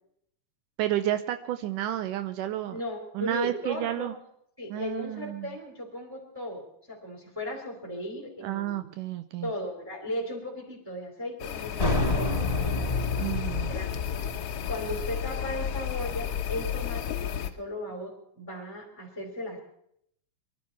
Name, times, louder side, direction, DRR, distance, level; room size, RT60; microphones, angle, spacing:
voice 1, 0.8-2.8 3.2-4.2 4.7-5.6 8.4-9.5 13.2-13.7, right 13 dB, 80° right, 9 dB, 2.2 m, -31 dB
voice 2, 2.7-4.1 4.6-8.8 9.4-12.9 13.7-13.9 14.7-19.6, left 1 dB, 5° right, 0 dB, 3.6 m, -36 dB
sound 1, 11.4-17.5, left 9 dB, 65° left, 1.5 m, -33 dB
sound 2, 11.8-17.1, left 3 dB, 15° left, 4.4 m, -30 dB
23.5 x 12.0 x 4.3 m, 0.71 s
omnidirectional pair, 3.9 m